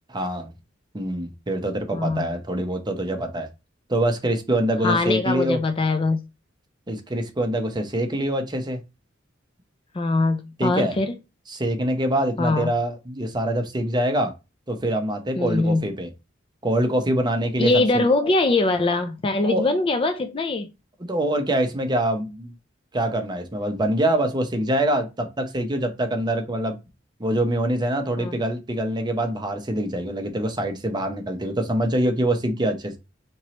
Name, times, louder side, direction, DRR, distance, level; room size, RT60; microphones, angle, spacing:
voice 1, 0.1-0.5 0.9-3.5 3.9-5.6 6.9-8.8 10.6-10.9 11.5-14.3 14.7-16.1 16.6-18.0 19.4-19.6 21.0-22.5 22.9-26.8 27.2-33.0, right 1 dB, 20° right, 0.7 m, -24 dB
voice 2, 1.9-2.3 4.8-6.2 9.9-11.1 12.4-12.7 15.4-15.8 17.6-20.7 28.2-28.3, left 2 dB, 25° left, 0.4 m, -22 dB
4.4 x 3.0 x 2.9 m
head